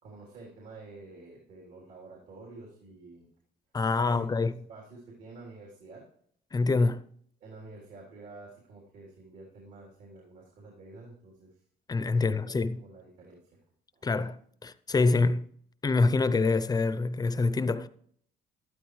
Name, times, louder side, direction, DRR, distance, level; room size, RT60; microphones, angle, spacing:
voice 1, 0.0-3.3 3.9-6.0 7.4-11.6 12.4-13.4 13.9-14.0, right 3 dB, 75° right, 3.6 m, -49 dB
voice 2, 3.7-4.5 6.5-7.0 11.9-12.8 14.0-15.5 15.8-17.9, left 3 dB, 20° left, 0.6 m, -26 dB
12.5 x 12.0 x 3.2 m
cardioid pair, 110°, 17 cm